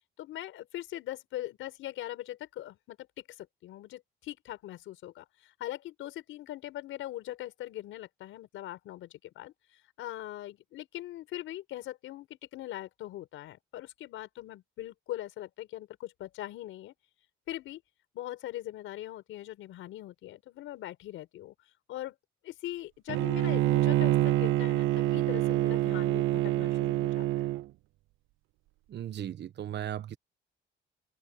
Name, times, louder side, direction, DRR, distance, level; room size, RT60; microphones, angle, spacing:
voice 1, 0.2-3.1 3.4-9.5 10.0-16.9 17.5-17.8 18.1-21.5 21.9-22.2 22.4-27.6, left 14 dB, 90° left, 5.4 m, -41 dB
Bowed string instrument, 23.1-27.6, right 16 dB, 90° right, 0.6 m, -26 dB
voice 2, 28.9-30.2, right 10 dB, 60° right, 1.2 m, -36 dB
open air
cardioid pair, 90°, 20 cm